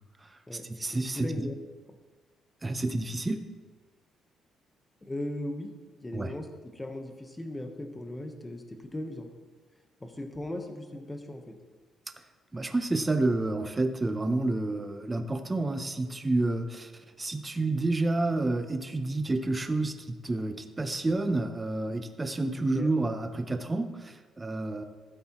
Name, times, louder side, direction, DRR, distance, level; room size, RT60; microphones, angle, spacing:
voice 1, 0.2-1.5 2.6-3.4 6.1-6.3 12.5-24.8, right 2 dB, 15° right, 7 dB, 0.7 m, -29 dB
voice 2, 0.9-1.5 5.0-5.7 6.0-6.5 6.7-9.3 10.0-11.5 22.6-22.9, left 1 dB, 10° left, 5 dB, 1.1 m, -37 dB
16.0 x 8.5 x 3.0 m, 1.3 s
cardioid pair, 155°, 0 cm